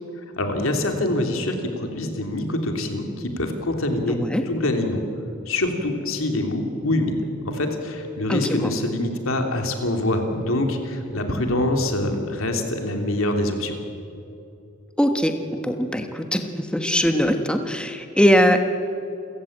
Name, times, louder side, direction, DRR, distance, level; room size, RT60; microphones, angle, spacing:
voice 1, 0.4-5.0 5.5-13.8, left 1 dB, 80° left, 4 dB, 3.2 m, -25 dB
voice 2, 4.1-4.4 8.3-8.7 15.0-18.6, equal, 5° left, 6 dB, 1.2 m, -21 dB
29.0 x 15.5 x 8.9 m, 2.7 s
head